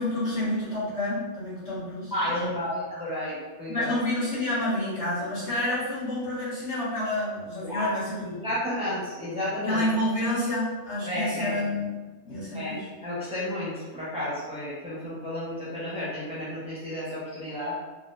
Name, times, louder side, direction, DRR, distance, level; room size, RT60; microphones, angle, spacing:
voice 1, 0.0-2.4 3.7-8.5 9.6-11.9 12.2-12.9, left 1 dB, 80° left, -10 dB, 1.8 m, -29 dB
voice 2, 2.1-3.9 7.6-7.9 8.2-9.9 11.1-11.6 12.5-17.8, left 1 dB, 5° right, -9 dB, 1.0 m, -32 dB
3.8 x 2.5 x 2.6 m, 1.2 s
omnidirectional pair, 1.2 m